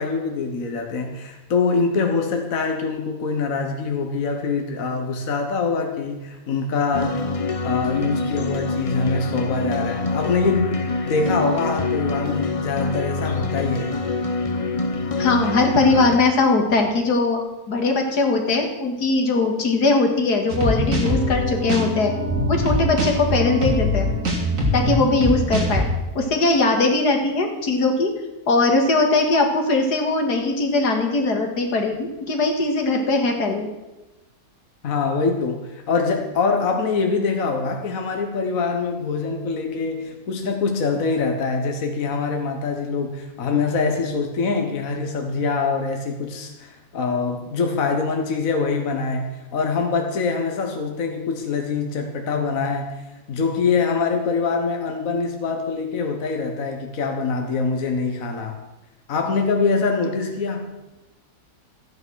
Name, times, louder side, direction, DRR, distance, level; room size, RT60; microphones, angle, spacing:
voice 1, 0.0-7.3 7.6-10.8 11.0-14.0 34.8-53.0 53.3-58.6 59.1-60.7, left 4 dB, 55° left, 3 dB, 1.7 m, -24 dB
sound 1, 6.9-16.2, left 3 dB, 30° left, 0.6 m, -25 dB
voice 2, 15.2-17.4 17.7-22.1 22.5-24.1 24.7-25.9 26.2-28.1 28.5-33.7, left 3 dB, 80° left, 3 dB, 2.3 m, -20 dB
sound 2, 20.5-25.8, equal, 55° right, 2.8 m, -23 dB
13.5 x 9.5 x 6.3 m, 1.0 s
omnidirectional pair, 1.7 m